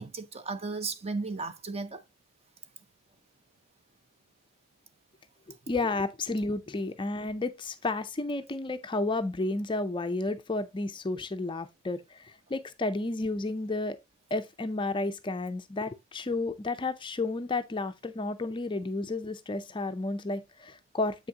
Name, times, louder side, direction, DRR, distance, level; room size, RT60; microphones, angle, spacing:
voice 1, 0.0-2.0, right 3 dB, 25° right, 0.6 m, -35 dB
voice 2, 5.7-14.0 14.3-21.3, left 2 dB, 20° left, 0.4 m, -32 dB
7.8 x 6.0 x 2.8 m
head